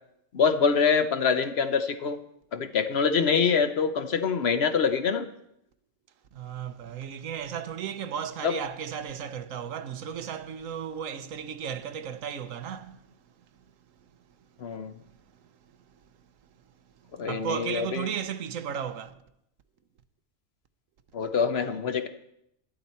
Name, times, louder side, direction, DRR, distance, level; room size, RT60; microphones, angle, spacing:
voice 1, 0.3-2.2 2.5-5.3 8.4-8.6 14.6-14.9 17.1-18.1 21.1-22.1, left 6 dB, 60° left, 1.0 m, -25 dB
voice 2, 6.3-13.0 17.2-19.1, right 8 dB, 85° right, 1.2 m, -34 dB
12.0 x 11.5 x 4.3 m
omnidirectional pair, 1.3 m